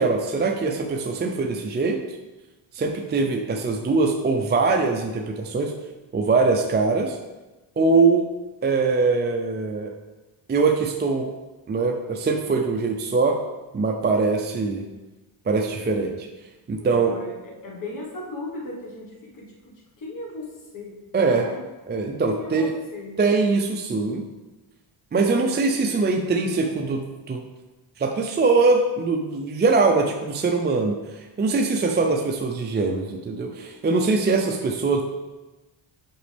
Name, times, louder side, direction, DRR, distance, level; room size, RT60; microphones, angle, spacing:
voice 1, 0.0-2.2 2.7-5.7 6.1-7.2 7.8-8.3 8.6-9.9 10.5-11.3 11.7-13.4 13.7-14.8 15.5-16.3 16.7-17.1 21.1-21.5 21.9-22.7 23.2-24.2 25.1-27.4 28.0-35.0, right 4 dB, 25° right, 3 dB, 0.4 m, -22 dB
voice 2, 16.8-21.0 21.4-21.6 22.3-23.2, left 2 dB, 45° left, -2 dB, 1.5 m, -37 dB
7.8 x 5.1 x 3.4 m, 1.1 s
cardioid pair, 125°, 47 cm